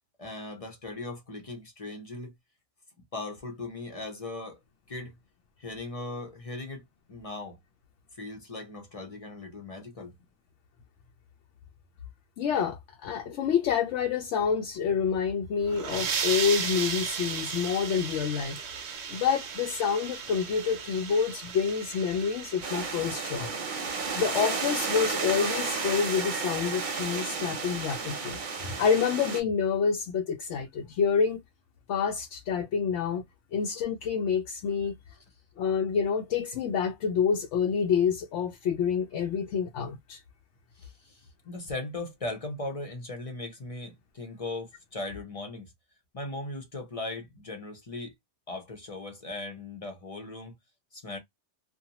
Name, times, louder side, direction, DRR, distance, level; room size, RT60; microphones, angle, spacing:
voice 1, 0.2-2.3 3.1-4.6 4.9-5.2 5.6-7.6 8.1-10.1 40.7-45.7 46.1-48.1 48.5-50.5 50.9-51.2, left 2 dB, 35° left, 0.7 m, -38 dB
voice 2, 12.4-18.6 19.1-23.5 24.2-28.4 28.6-31.4 31.9-33.2 33.5-35.0 35.6-40.2, left 6 dB, 85° left, 0.9 m, -28 dB
sound 1, 15.5-23.0, right 6 dB, 70° right, 0.9 m, -35 dB
sound 2, 22.6-29.4, right 5 dB, 50° right, 0.8 m, -32 dB
2.5 x 2.2 x 2.8 m
omnidirectional pair, 1.2 m